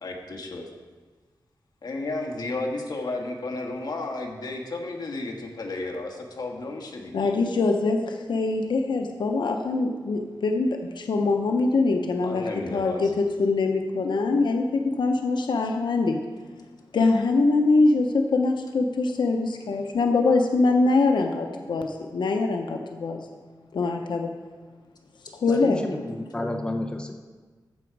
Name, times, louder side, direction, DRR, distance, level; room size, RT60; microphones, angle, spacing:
voice 1, 0.0-0.7 1.8-7.2 12.2-13.1, left 2 dB, 65° left, 1 dB, 1.5 m, -33 dB
voice 2, 7.1-12.4 12.7-16.2 16.9-23.2 23.7-24.3 25.4-25.8, left 3 dB, 90° left, 3 dB, 0.8 m, -23 dB
voice 3, 25.5-27.1, left 1 dB, 10° left, 3 dB, 0.7 m, -31 dB
14.5 x 6.1 x 4.7 m, 1.4 s
wide cardioid pair, 135°, 8 cm